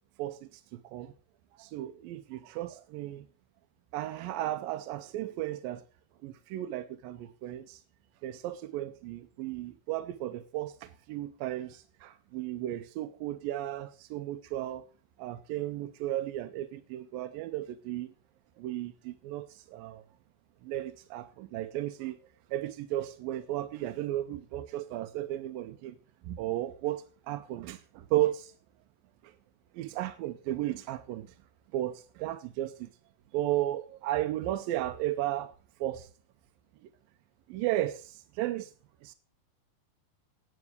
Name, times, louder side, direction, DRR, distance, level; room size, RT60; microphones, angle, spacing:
voice 1, 0.2-1.1 1.6-3.3 3.9-5.8 6.2-7.8 8.2-14.8 15.2-18.1 18.6-20.0 20.6-22.2 22.5-26.0 26.2-28.5 29.2-29.3 29.7-31.3 31.7-32.9 33.3-35.5 35.8-36.1 37.5-38.7 39.0-39.1, right 14 dB, 80° right, 2.3 m, -34 dB
9.7 x 8.8 x 6.6 m
omnidirectional pair, 4.3 m